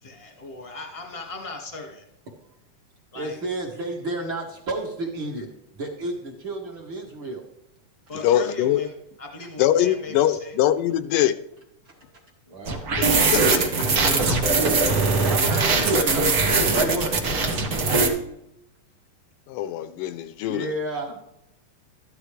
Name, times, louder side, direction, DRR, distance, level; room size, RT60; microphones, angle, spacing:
voice 1, 0.0-2.1 3.1-3.4 8.1-8.9 9.2-10.6, left 2 dB, 20° left, 1 dB, 1.0 m, -37 dB
voice 2, 3.1-5.5 5.7-7.4 9.4-9.5 11.9-14.1 15.0-17.2 20.5-21.3, right 2 dB, 50° right, -2 dB, 1.7 m, -32 dB
voice 3, 8.1-8.8 9.6-11.4 13.0-13.1 13.3-13.6 19.5-20.7, left 12 dB, 80° left, 11 dB, 2.1 m, -22 dB
sound 1, 12.7-18.1, right 3 dB, 90° right, 0.8 m, -21 dB
13.5 x 11.0 x 3.3 m, 0.81 s
omnidirectional pair, 3.9 m